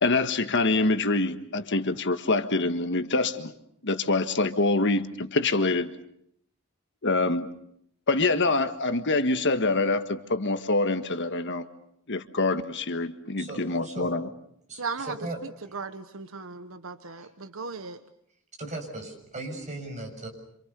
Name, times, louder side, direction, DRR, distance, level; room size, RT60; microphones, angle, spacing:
voice 1, 0.0-3.5 3.8-5.9 7.0-7.5 8.1-11.6 12.1-14.3, left 3 dB, 55° left, 9 dB, 1.5 m, -25 dB
voice 2, 13.4-14.1 14.7-15.7 17.2-17.3 18.6-20.3, right 2 dB, 35° right, 3 dB, 7.1 m, -38 dB
voice 3, 14.8-15.2 15.7-18.0, right 4 dB, 65° right, 10 dB, 1.2 m, -36 dB
27.5 x 27.0 x 6.9 m, 0.72 s
head